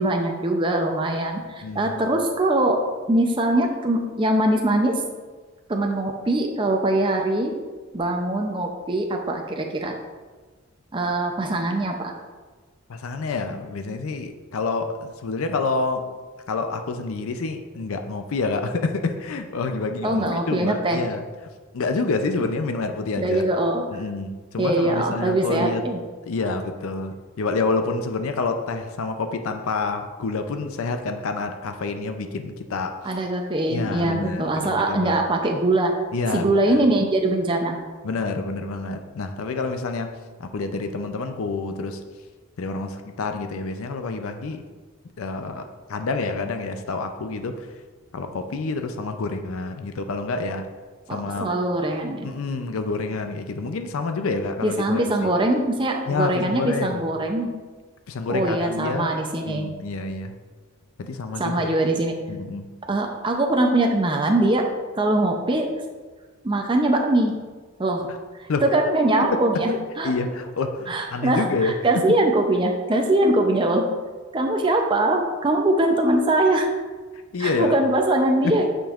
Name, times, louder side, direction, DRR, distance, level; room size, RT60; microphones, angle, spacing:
voice 1, 0.0-2.8 3.1-5.0 5.7-7.5 7.9-9.9 10.9-12.1 20.0-21.0 23.2-23.8 24.6-26.0 33.0-35.9 36.3-37.8 51.1-52.3 54.6-57.5 58.3-59.7 61.4-62.1 62.9-64.6 64.9-65.7 66.4-67.3 67.8-68.1 68.4-70.1 70.9-73.9 74.3-76.7 77.4-78.7, right 1 dB, 20° right, 2 dB, 0.4 m, -22 dB
voice 2, 1.6-1.9 12.9-16.1 16.5-21.2 21.7-23.4 23.9-25.8 26.2-33.0 33.7-35.2 36.1-36.8 38.0-42.0 42.6-44.6 45.2-47.7 48.1-50.6 51.1-51.6 52.2-55.3 56.1-57.0 58.1-60.3 61.0-61.7 62.3-62.7 68.1-68.2 68.5-68.6 69.3-69.4 69.7-69.8 70.0-72.0 77.3-77.8 78.4-78.5, left 3 dB, 70° left, 7 dB, 0.5 m, -28 dB
8.7 x 5.2 x 2.4 m, 1.4 s
head